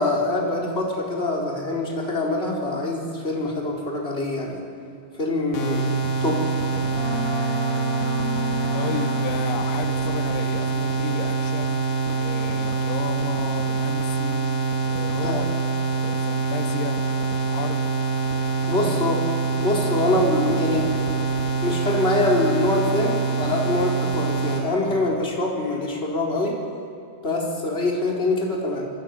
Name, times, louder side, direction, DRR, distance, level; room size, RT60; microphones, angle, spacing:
voice 1, 0.0-4.6 5.2-5.9 6.2-6.4 15.2-15.4 18.7-19.2 19.6-20.9 21.6-26.6 27.2-28.9, left 2 dB, 15° left, -2 dB, 4.3 m, -24 dB
sound 1, 5.5-24.6, right 4 dB, 55° left, 4.3 m, -25 dB
Boat Water vehicle, 6.9-9.6, left 3 dB, 70° right, 7.5 m, -32 dB
voice 2, 8.7-11.8 12.2-14.5 14.9-15.6 16.0-17.0 17.5-17.9 18.8-19.2, left 7 dB, 90° left, 5 dB, 3.6 m, -33 dB
26.0 x 24.5 x 9.2 m, 2.4 s
omnidirectional pair, 4.6 m